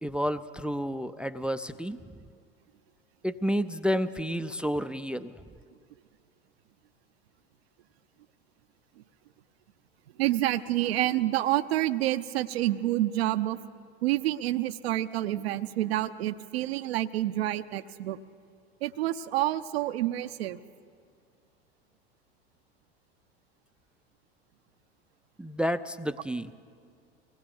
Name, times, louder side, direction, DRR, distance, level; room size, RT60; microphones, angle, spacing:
voice 1, 0.0-2.0 3.2-5.3 25.4-26.5, equal, 5° right, 13 dB, 0.5 m, -30 dB
voice 2, 10.2-13.6 14.0-18.2 18.8-20.6, right 14 dB, 70° right, 11 dB, 0.8 m, -28 dB
25.0 x 19.0 x 7.1 m, 2.3 s
hypercardioid pair, 85°, 32 cm